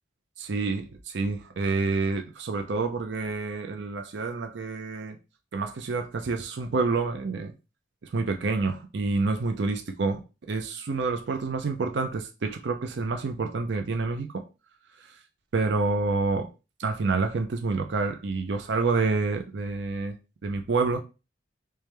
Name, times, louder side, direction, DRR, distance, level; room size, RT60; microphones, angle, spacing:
voice 1, 0.4-5.2 5.5-7.5 8.1-10.2 10.5-14.4 15.5-16.5 16.8-20.1 20.4-21.0, right 3 dB, 65° right, 0.5 m, -28 dB
3.4 x 3.2 x 3.2 m
head